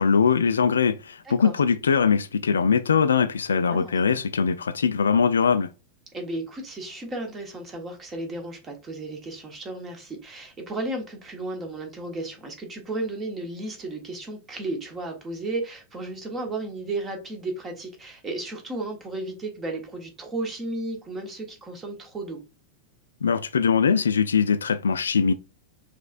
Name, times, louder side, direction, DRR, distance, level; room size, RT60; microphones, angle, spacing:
voice 1, 0.0-5.7 23.2-25.3, left 6 dB, 70° left, 0.3 m, -21 dB
voice 2, 3.6-4.2 6.1-22.4, right 2 dB, 20° right, 1.3 m, -34 dB
5.0 x 3.4 x 2.5 m
figure-of-eight pair, 90°, 0 cm